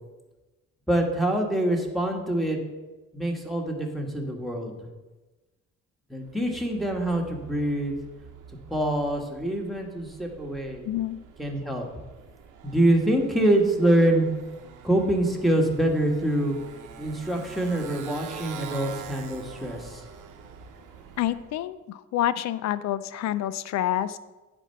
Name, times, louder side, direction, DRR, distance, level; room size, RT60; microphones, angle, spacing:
voice 1, 0.9-2.6 3.1-4.7 6.1-7.9 8.7-10.8 11.4-11.9 12.6-14.3 14.8-16.6 17.0-20.0, right 1 dB, ahead, 0 dB, 1.5 m, -25 dB
Motorcycle, 6.2-21.6, right 7 dB, 90° right, 1.0 m, -45 dB
voice 2, 10.8-11.2 21.2-24.2, left 12 dB, 65° left, 15 dB, 0.5 m, -28 dB
9.0 x 4.3 x 5.7 m, 1.1 s
cardioid pair, 90°, 30 cm